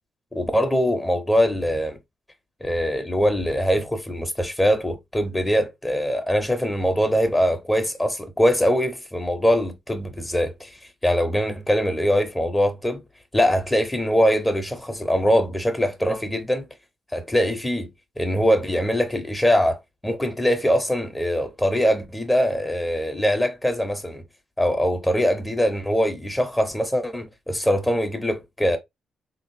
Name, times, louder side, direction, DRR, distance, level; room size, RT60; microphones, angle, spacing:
voice 1, 0.3-2.0 2.6-13.0 13.3-16.6 17.1-17.9 18.2-24.2 24.6-28.8, equal, 10° left, 0.5 m, -22 dB
3.4 x 2.5 x 2.5 m
cardioid pair, 110°, 0 cm